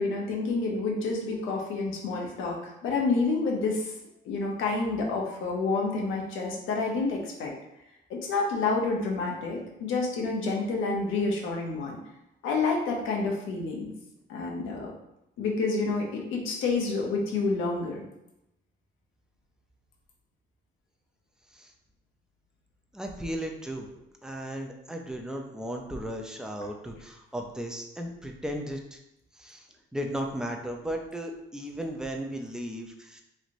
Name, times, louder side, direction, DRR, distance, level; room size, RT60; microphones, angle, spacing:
voice 1, 0.0-3.9 4.2-7.5 8.1-12.0 12.4-13.9 14.3-14.9 15.4-18.0, left 3 dB, 85° left, 0 dB, 0.8 m, -29 dB
voice 2, 22.9-29.0 29.3-29.7 29.9-33.2, equal, 5° right, 2 dB, 0.5 m, -36 dB
3.2 x 2.8 x 2.5 m, 0.85 s
cardioid pair, 90°, 20 cm